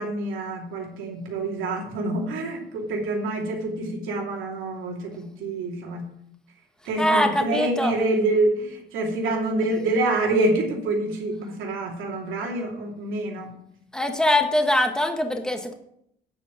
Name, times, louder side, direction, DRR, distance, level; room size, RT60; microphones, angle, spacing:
voice 1, 0.0-6.1 6.8-13.5, right 2 dB, 85° right, -1 dB, 2.7 m, -26 dB
voice 2, 7.0-7.9 13.9-15.7, left 1 dB, 5° left, 4 dB, 1.5 m, -22 dB
9.4 x 5.1 x 7.5 m, 0.73 s
cardioid pair, 90°, 20 cm